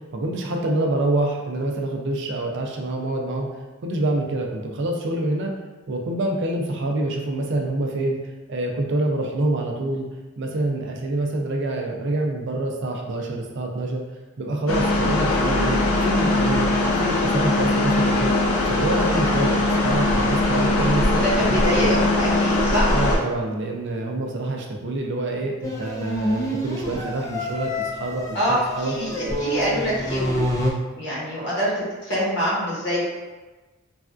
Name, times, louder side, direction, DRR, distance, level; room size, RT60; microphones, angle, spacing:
voice 1, 0.1-3.5 3.8-5.5 5.9-8.2 8.5-10.1 10.4-14.0 14.4-16.7 17.0-18.3 18.7-22.0 22.9-28.9, right 2 dB, 55° right, 1 dB, 0.4 m, -26 dB
sound 1, 14.7-23.2, left 2 dB, 75° left, 0.5 m, -21 dB
voice 2, 19.3-19.8 21.1-22.9 28.3-30.6 31.0-33.0, equal, 55° left, -7 dB, 1.0 m, -25 dB
sound 2, 25.6-30.7, equal, 15° left, 0.3 m, -27 dB
3.3 x 2.3 x 2.5 m, 1.2 s
head